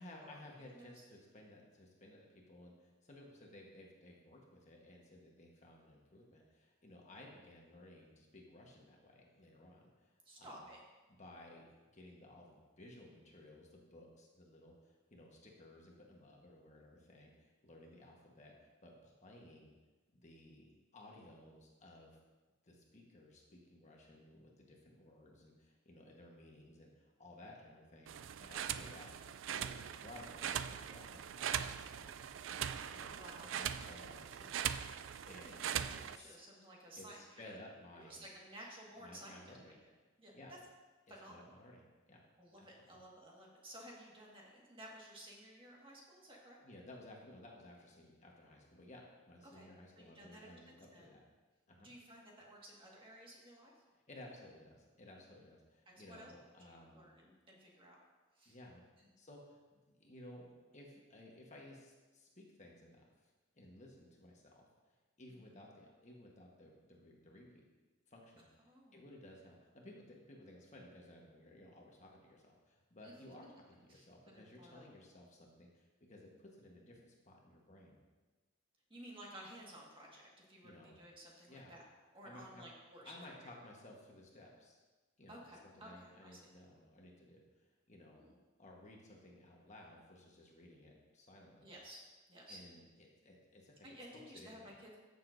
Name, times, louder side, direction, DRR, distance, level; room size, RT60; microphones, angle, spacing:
voice 1, 0.0-10.6 11.2-19.7 20.1-22.2 22.6-29.1 29.5-32.3 32.9-34.7 35.0-35.7 36.0-36.4 37.0-38.2 39.0-39.8 40.3-40.5 41.1-42.2 42.6-43.0 46.6-51.2 51.7-51.9 53.9-57.1 58.4-58.8 59.2-63.3 63.5-67.6 68.1-78.0 80.6-81.0 81.5-81.8 82.2-82.7 83.0-84.9 85.2-88.2 88.6-91.7 92.5-93.8 94.3-94.7, left 1 dB, 35° left, -1 dB, 1.3 m, -57 dB
voice 2, 10.2-10.8 28.7-28.9 33.0-33.5 35.2-37.5 37.9-39.6 40.2-40.3 41.1-41.4 42.4-46.6 49.5-49.7 50.0-51.1 51.8-53.7 55.8-56.3 56.7-58.0 58.4-58.6 59.0-59.1 65.3-65.6 68.6-69.0 73.0-73.1 73.9-74.9 78.9-81.8 82.1-83.2 85.3-86.5 88.1-88.3 91.6-92.0 92.3-92.6 93.8-95.0, right 1 dB, 25° right, -3 dB, 1.7 m, -55 dB
sound 1, 28.1-36.2, right 9 dB, 65° right, 0.3 m, -41 dB
14.0 x 6.8 x 2.6 m, 1.3 s
head